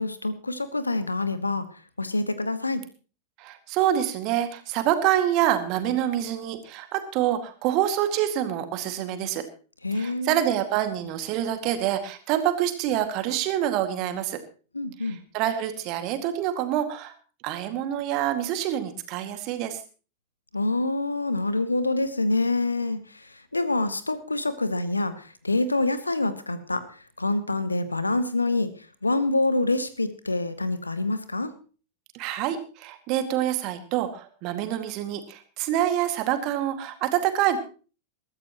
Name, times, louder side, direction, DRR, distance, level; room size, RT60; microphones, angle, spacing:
voice 1, 0.0-1.6 2.0-2.8 9.8-10.5 14.7-15.2 20.5-28.7 29.0-31.5, left 2 dB, 80° left, 14 dB, 1.2 m, -26 dB
voice 2, 3.4-9.4 9.9-14.4 15.0-17.1 17.4-19.8 32.1-37.6, right 11 dB, 40° right, 8 dB, 2.1 m, -26 dB
21.5 x 13.0 x 3.0 m, 0.37 s
figure-of-eight pair, 90°, 0 cm